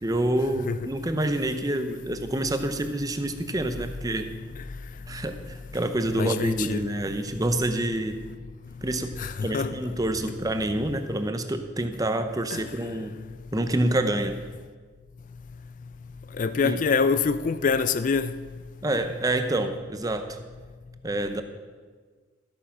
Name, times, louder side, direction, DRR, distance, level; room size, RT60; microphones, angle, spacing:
voice 1, 0.0-4.3 5.1-8.2 8.8-13.2 13.5-14.4 16.6-16.8 18.8-20.4 21.0-21.4, right 1 dB, 20° right, 0.7 m, -27 dB
voice 2, 6.2-6.9 9.2-9.7 12.5-12.6 16.4-18.3, left 5 dB, 40° left, 0.3 m, -25 dB
13.5 x 8.4 x 6.0 m
head